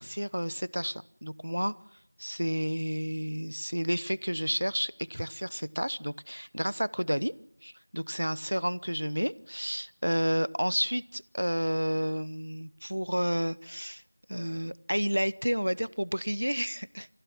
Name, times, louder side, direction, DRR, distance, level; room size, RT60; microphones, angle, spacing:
voice 1, 0.0-1.7 2.2-7.3 7.6-14.0 14.3-17.1, equal, 75° right, 19 dB, 0.9 m, -31 dB
30.0 x 16.0 x 7.3 m, 0.74 s
figure-of-eight pair, 180°, 0 cm